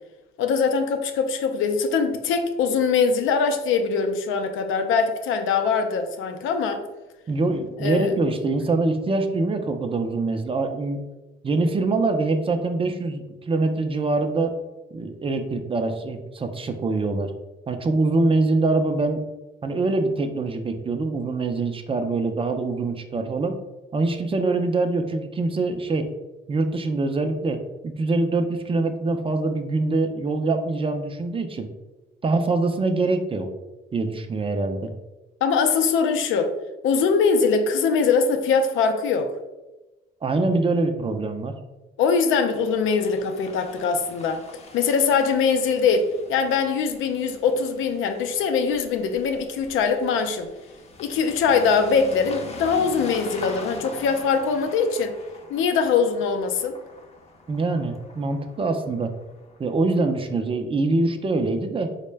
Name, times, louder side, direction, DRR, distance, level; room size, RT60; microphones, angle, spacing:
voice 1, 0.4-6.8 7.8-8.2 35.4-36.5 36.8-39.3 42.0-44.4 44.7-50.5 51.0-55.1 55.5-56.7, left 5 dB, 80° left, 7 dB, 0.4 m, -22 dB
voice 2, 7.3-11.0 11.4-14.6 14.9-17.3 17.7-19.2 19.6-23.6 23.9-26.1 26.5-31.7 32.2-33.5 33.9-34.9 40.2-41.5 57.5-59.1 59.6-61.9, right 3 dB, 30° right, 6 dB, 0.4 m, -24 dB
sound 1, 42.5-60.2, left 3 dB, 35° left, 0.5 m, -43 dB
3.7 x 2.1 x 3.2 m, 1.1 s
cardioid pair, 90°, 20 cm